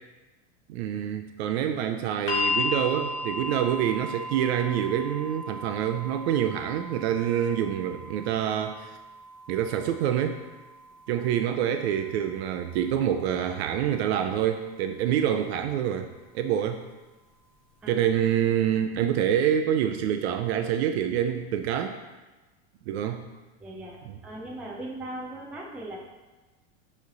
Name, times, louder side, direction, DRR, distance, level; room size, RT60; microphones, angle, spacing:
voice 1, 0.7-9.0 9.5-10.4 11.1-16.1 16.3-16.8 17.9-22.0 22.9-23.2 24.1-24.2, right 9 dB, 65° right, 7 dB, 0.5 m, -26 dB
sound 1, 2.3-14.4 15.4-15.5, left 2 dB, 35° left, 0.9 m, -36 dB
voice 2, 23.6-24.0 24.2-26.0, right 1 dB, 5° right, -3 dB, 0.3 m, -38 dB
7.9 x 3.2 x 3.8 m, 1.2 s
supercardioid pair, 155°, 35 cm